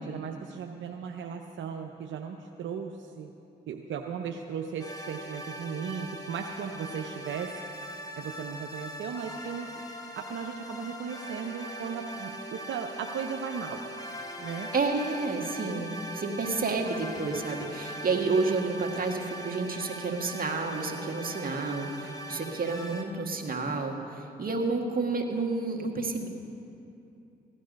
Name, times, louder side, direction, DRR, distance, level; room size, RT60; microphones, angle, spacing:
voice 1, 0.0-3.3 3.7-7.6 8.2-9.7 10.2-13.8 14.4-14.7, right 6 dB, 70° right, 3 dB, 0.7 m, -36 dB
sound 1, 4.8-23.0, equal, 20° left, 1.5 m, -41 dB
voice 2, 14.7-26.3, right 3 dB, 45° right, 2 dB, 1.7 m, -30 dB
16.0 x 11.0 x 5.2 m, 2.7 s
supercardioid pair, 55°, 20 cm